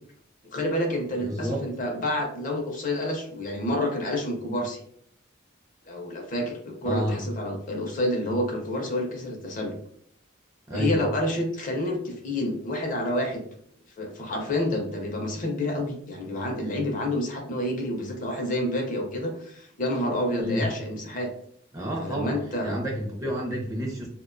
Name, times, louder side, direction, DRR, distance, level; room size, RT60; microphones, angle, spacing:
voice 1, 0.5-4.8 5.8-9.8 10.7-13.4 14.0-21.3 22.0-22.8, left 1 dB, 40° left, 3 dB, 0.5 m, -29 dB
voice 2, 1.2-1.6 6.8-7.2 10.7-11.0 20.4-20.7 21.7-22.4 22.6-24.1, equal, 15° right, -1 dB, 0.4 m, -29 dB
2.4 x 2.1 x 2.4 m, 0.65 s
head